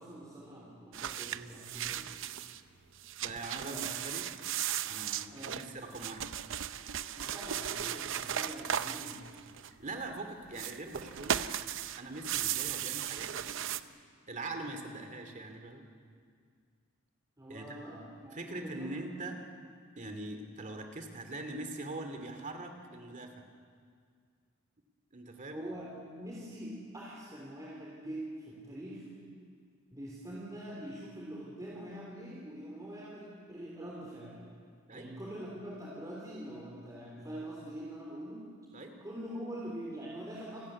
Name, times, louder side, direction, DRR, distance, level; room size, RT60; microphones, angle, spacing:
voice 1, 0.0-2.2 3.3-3.4 3.6-3.9 5.3-5.6 7.1-9.2 17.4-19.1 25.5-29.1 29.9-34.4 34.9-38.5 39.0-40.7, right 1 dB, 15° right, -4 dB, 3.5 m, -44 dB
sound 1, 0.9-2.6 3.0-9.9 10.5-13.8, right 10 dB, 65° right, 0.7 m, -36 dB
voice 2, 3.2-4.3 4.9-6.2 9.8-11.4 12.0-13.7 14.3-15.8 17.5-17.8 18.3-19.4 20.0-23.4 25.1-25.6 34.9-35.1 38.7-38.9, right 2 dB, 40° right, 5 dB, 2.5 m, -42 dB
29.0 x 13.5 x 9.8 m, 2.1 s
head